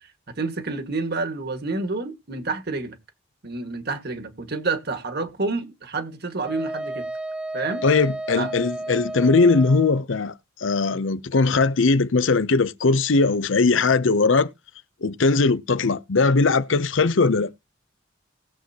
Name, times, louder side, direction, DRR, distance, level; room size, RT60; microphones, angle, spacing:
voice 1, 0.3-3.0 3.4-7.1 7.5-7.9 8.3-8.5, right 3 dB, 55° right, 1.8 m, -29 dB
Wind instrument woodwind instrument, 6.5-10.0, right 2 dB, 5° right, 0.6 m, -32 dB
voice 2, 7.8-10.3 10.6-14.5 15.0-17.5, left 3 dB, 80° left, 0.7 m, -20 dB
19.5 x 7.7 x 2.9 m
head